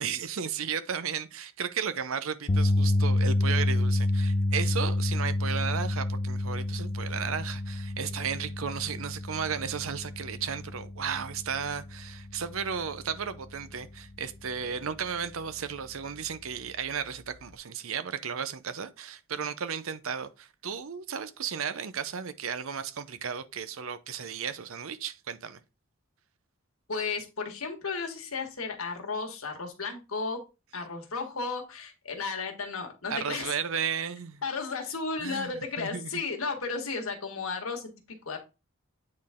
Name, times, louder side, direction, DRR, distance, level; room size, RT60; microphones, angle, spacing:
voice 1, 0.0-25.6 33.1-34.4 35.2-36.2, right 7 dB, 75° right, 0.7 m, -34 dB
sound 1, 2.5-14.7 15.1-15.3 17.5-17.6, left 1 dB, 35° left, 0.5 m, -29 dB
voice 2, 26.9-30.4 30.7-33.5 34.4-37.9 38.2-38.4, left 4 dB, 80° left, 1.7 m, -34 dB
8.7 x 4.0 x 3.6 m
head